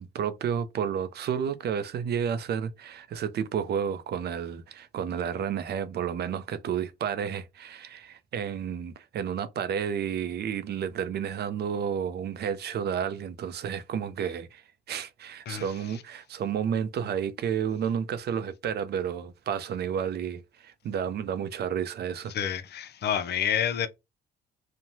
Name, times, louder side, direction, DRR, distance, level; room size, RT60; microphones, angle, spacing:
voice 1, 0.0-22.3, right 8 dB, 55° right, 0.5 m, -31 dB
voice 2, 22.3-23.9, left 9 dB, 55° left, 0.5 m, -28 dB
3.0 x 2.1 x 2.6 m
supercardioid pair, 70°, 20 cm